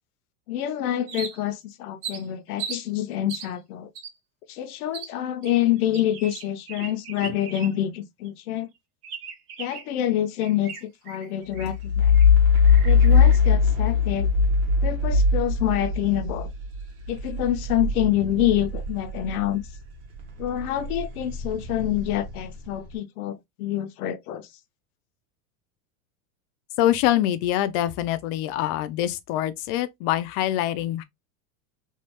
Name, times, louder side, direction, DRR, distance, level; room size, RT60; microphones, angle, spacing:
voice 1, 0.5-3.9 4.5-8.7 9.6-12.2 12.8-14.3 14.8-16.5 17.1-19.6 20.4-24.5, left 12 dB, 85° left, 0.7 m, -27 dB
sound 1, 1.1-1.6 2.0-2.8 3.3-3.5 3.9-4.1 4.9-5.1 5.4-8.0 8.2-8.3 9.0-10.0 10.4-11.8 12.1-12.3 12.5-13.5, right 7 dB, 85° right, 1.2 m, -38 dB
sound 2, 11.5-19.8 20.1-22.7, left 5 dB, 30° right, 0.9 m, -21 dB
voice 2, 26.8-31.0, left 13 dB, 40° left, 0.4 m, -24 dB
3.3 x 2.3 x 2.9 m
supercardioid pair, 145°, 44 cm